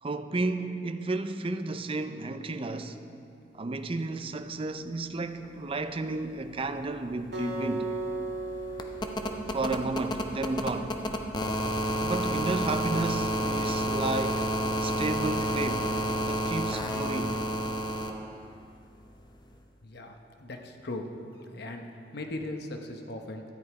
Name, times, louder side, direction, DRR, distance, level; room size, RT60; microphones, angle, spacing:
voice 1, 0.0-3.0 3.5-7.9 9.5-11.0 12.0-14.5 14.8-16.0 16.3-17.4, right 3 dB, 30° right, 0.5 m, -32 dB
sound 1, 6.9-7.0 7.2-18.1 19.5-19.6, equal, 25° left, 0.8 m, -30 dB
Acoustic guitar, 7.3-10.6, right 2 dB, 65° right, 2.1 m, -36 dB
voice 2, 19.8-21.0 21.4-23.4, left 2 dB, 65° left, 1.0 m, -39 dB
13.5 x 9.6 x 4.8 m
head